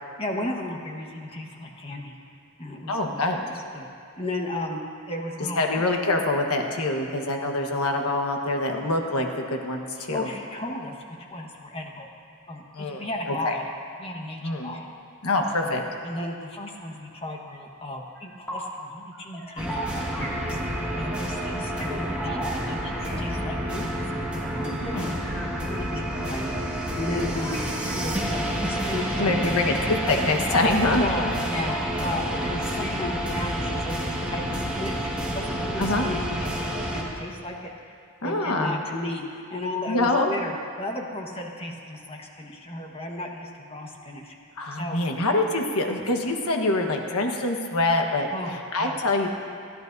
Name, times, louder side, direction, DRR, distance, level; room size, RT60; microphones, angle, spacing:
voice 1, 0.2-2.2 2.6-3.9 4.2-4.8 5.1-5.8 10.0-12.1 12.5-13.6 14.0-14.9 15.3-15.7 16.0-22.4 22.6-24.1 24.5-27.6 27.9-29.8 31.0-37.7 38.2-44.3 44.7-45.0 48.3-49.0, left 1 dB, 25° left, 1 dB, 1.4 m, -35 dB
voice 2, 2.9-3.4 5.6-10.3 12.7-13.1 13.4-13.5 14.4-14.7 15.2-15.8 24.8-25.1 29.2-31.1 35.8-36.1 38.2-38.8 39.9-40.3 44.6-48.3 48.7-49.3, left 2 dB, 80° left, 3 dB, 1.3 m, -25 dB
sound 1, 18.2-18.8 19.1-23.5 23.8-25.6 25.9-26.6 27.1-29.3 29.8-32.2 32.5-33.5, right 1 dB, 10° left, 2.4 m, -39 dB
sound 2, 19.6-37.0, equal, 5° right, 1.8 m, -29 dB
29.0 x 11.0 x 2.7 m, 2.4 s
head